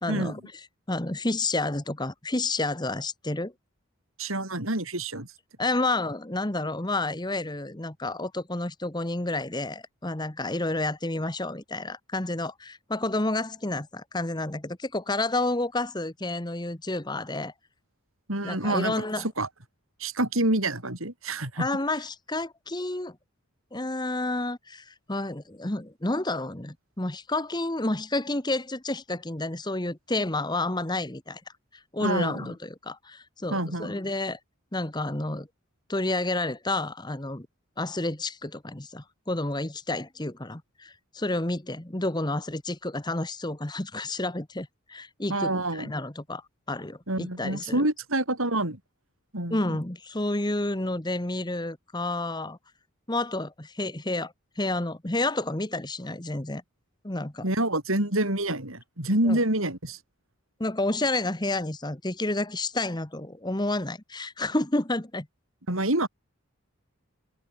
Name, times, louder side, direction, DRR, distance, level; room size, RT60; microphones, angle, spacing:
voice 1, 0.0-0.4 0.9-3.5 4.2-4.3 5.6-17.5 18.4-19.2 21.6-23.2 23.7-31.4 31.9-34.4 34.7-35.5 35.9-37.5 37.8-46.4 46.7-47.8 49.5-52.6 53.1-56.6 57.0-57.4 59.2-59.4 60.6-65.3, left 2 dB, 20° left, 1.3 m, -30 dB
voice 2, 4.2-5.3 18.3-19.5 20.0-21.7 32.0-32.5 33.5-34.0 45.3-45.9 47.1-48.8 49.3-49.8 57.4-60.0 65.7-66.1, right 1 dB, 70° right, 7.9 m, -27 dB
head